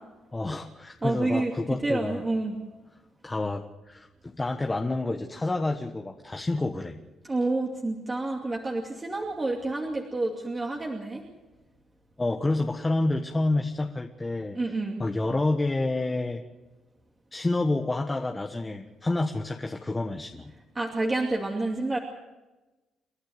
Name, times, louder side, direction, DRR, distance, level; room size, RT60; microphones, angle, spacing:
voice 1, 0.3-2.2 3.2-7.0 12.2-14.6 15.0-16.4 17.3-20.5, left 2 dB, 20° left, 3 dB, 1.4 m, -28 dB
voice 2, 1.0-1.5 1.8-2.6 7.2-11.2 14.5-15.0 20.7-22.0, right 2 dB, 25° right, 0 dB, 2.5 m, -29 dB
29.5 x 11.5 x 8.0 m, 1.1 s
cardioid pair, 90°, 0 cm